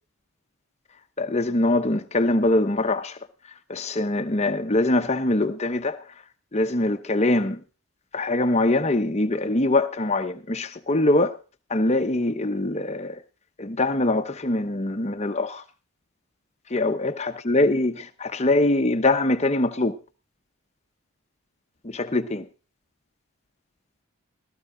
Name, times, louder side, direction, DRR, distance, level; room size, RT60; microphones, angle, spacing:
voice 1, 1.2-3.2 3.7-6.0 6.5-7.6 8.1-11.4 11.7-13.2 13.6-15.6 16.7-19.9 21.8-22.5, left 2 dB, 30° left, 0.8 m, -23 dB
15.0 x 14.0 x 3.8 m
head